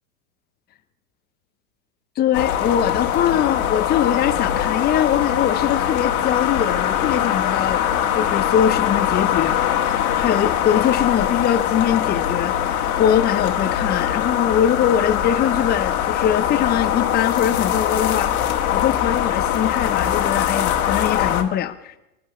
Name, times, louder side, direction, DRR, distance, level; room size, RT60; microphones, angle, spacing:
voice 1, 2.2-7.8 8.1-9.6 10.1-18.3 18.7-21.9, left 9 dB, 20° left, 10 dB, 0.9 m, -22 dB
sound 1, 2.3-21.4, left 10 dB, 60° left, 2.0 m, -22 dB
25.5 x 12.0 x 3.2 m, 0.89 s
hypercardioid pair, 110°, 47 cm